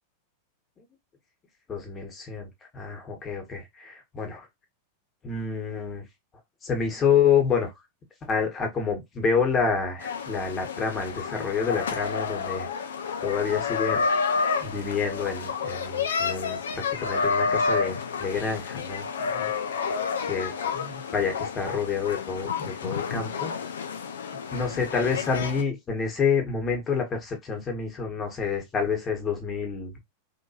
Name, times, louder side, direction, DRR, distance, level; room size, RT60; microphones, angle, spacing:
voice 1, 1.7-4.5 5.2-6.0 6.6-7.7 8.2-12.7 13.2-14.0 14.6-19.5 20.3-23.5 24.5-29.9, left 6 dB, 25° left, 1.4 m, -28 dB
sound 1, 10.0-25.6, left 5 dB, 65° left, 0.5 m, -30 dB
3.4 x 2.9 x 2.8 m
figure-of-eight pair, 90°, 0 cm